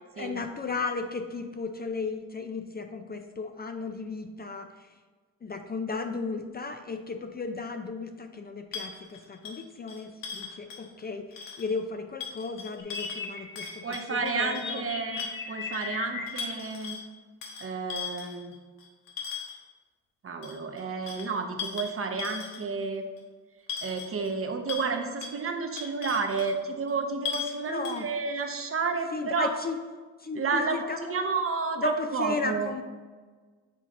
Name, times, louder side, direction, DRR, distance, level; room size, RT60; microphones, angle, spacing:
voice 1, 0.2-4.9 5.4-14.8 27.6-28.1 29.1-29.8 30.2-31.3 31.8-32.8, left 3 dB, 30° left, 6 dB, 0.4 m, -35 dB
sound 1, 8.7-11.0 11.3-11.7 12.2-14.8 15.1-15.9 16.3-17.0 17.4-19.6 20.4-22.8 23.2-23.3 23.7-24.4 24.7-24.9 25.2-25.4 25.8-26.5 26.9-27.0 27.3-27.6 27.8-28.1, left 6 dB, 85° left, 1.1 m, -38 dB
sound 2, 12.8-16.2, left 5 dB, 65° left, 1.1 m, -37 dB
voice 2, 13.8-17.0 17.6-18.6 20.2-23.0 23.8-29.5 30.3-32.7, right 4 dB, 40° right, 5 dB, 0.8 m, -31 dB
7.6 x 4.0 x 3.7 m, 1.4 s
cardioid pair, 85°, 33 cm